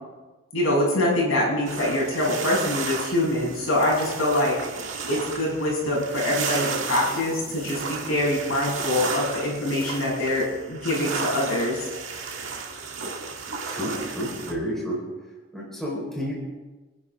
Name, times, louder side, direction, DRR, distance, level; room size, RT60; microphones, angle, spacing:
voice 1, 0.5-4.5 5.1-11.8, left 1 dB, 70° left, -4 dB, 6.6 m, -24 dB
sound 1, 1.7-14.5, right 5 dB, 60° right, 1.8 m, -33 dB
voice 2, 13.7-15.0 15.5-16.3, equal, ahead, -5 dB, 4.4 m, -30 dB
29.0 x 10.5 x 3.7 m, 1.2 s
head